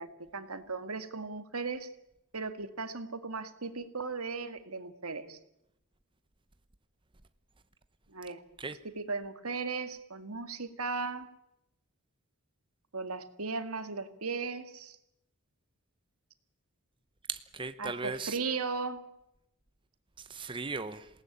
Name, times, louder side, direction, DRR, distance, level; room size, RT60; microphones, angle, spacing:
voice 1, 0.0-1.9 2.3-5.4 8.1-8.4 8.8-11.3 12.9-15.0 17.8-19.0, right 4 dB, 85° right, 2.1 m, -37 dB
voice 2, 17.3-18.4 20.2-21.1, right 4 dB, 25° right, 1.0 m, -37 dB
27.5 x 18.5 x 8.7 m
head